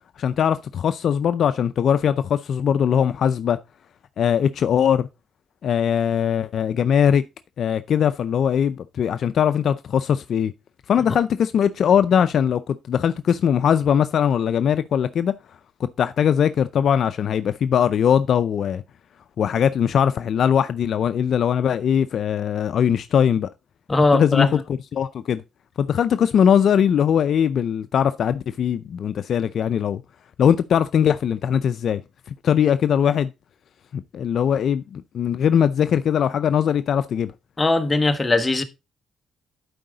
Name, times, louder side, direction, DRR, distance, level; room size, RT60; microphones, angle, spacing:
voice 1, 0.2-3.6 4.2-5.1 5.6-7.2 7.6-10.5 10.9-15.3 15.8-18.8 19.4-23.5 24.1-24.6 24.9-25.4 25.8-30.0 30.4-32.0 32.4-33.3 34.1-37.3, left 8 dB, 60° left, 0.4 m, -20 dB
voice 2, 23.9-24.5 37.6-38.6, left 2 dB, 20° left, 1.2 m, -19 dB
11.5 x 4.8 x 3.9 m
cardioid pair, 90°, 0 cm